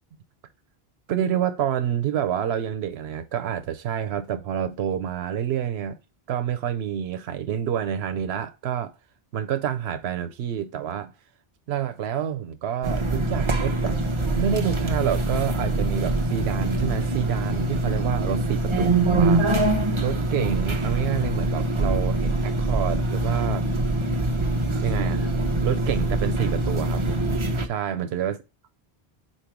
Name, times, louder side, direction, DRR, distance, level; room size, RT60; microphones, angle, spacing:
voice 1, 1.1-6.0 6.3-8.9 9.3-11.1 11.7-14.0 14.4-19.6 20.0-23.7 24.8-25.3 25.6-27.2 27.6-28.4, right 9 dB, 90° right, 0.9 m, -28 dB
sound 1, 12.8-27.7, right 2 dB, 30° right, 0.7 m, -24 dB
5.3 x 4.4 x 4.5 m
omnidirectional pair, 1.0 m